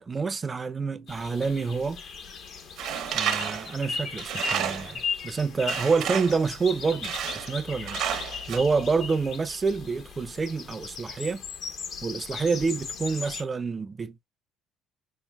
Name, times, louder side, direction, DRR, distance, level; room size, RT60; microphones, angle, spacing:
voice 1, 0.0-2.0 3.1-8.0 8.5-11.4 12.0-14.3, right 4 dB, 30° right, 0.4 m, -28 dB
sound 1, 1.1-13.4, left 5 dB, 60° left, 0.8 m, -37 dB
Tools, 2.8-5.0 5.7-6.5 7.0-7.6 7.9-8.6, right 9 dB, 70° right, 0.6 m, -31 dB
5.5 x 2.2 x 2.2 m
supercardioid pair, 65°, 0 cm